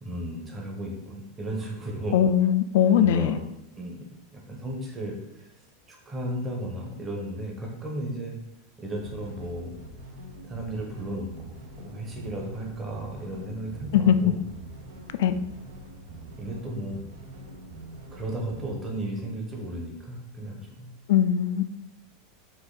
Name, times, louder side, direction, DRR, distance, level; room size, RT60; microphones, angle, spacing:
voice 1, 0.0-2.2 2.9-3.4 3.7-4.1 4.3-5.5 5.9-8.3 8.8-9.7 10.4-14.4 16.4-17.1 18.1-20.9, right 1 dB, 15° right, 0 dB, 0.8 m, -34 dB
voice 2, 2.1-3.4 13.9-14.3 15.2-15.4 21.1-21.6, left 9 dB, 75° left, 11 dB, 0.3 m, -20 dB
sound 1, 8.9-18.7, right 1 dB, 85° right, 0.8 m, -44 dB
4.4 x 2.6 x 3.8 m, 0.81 s
supercardioid pair, 150°, 0 cm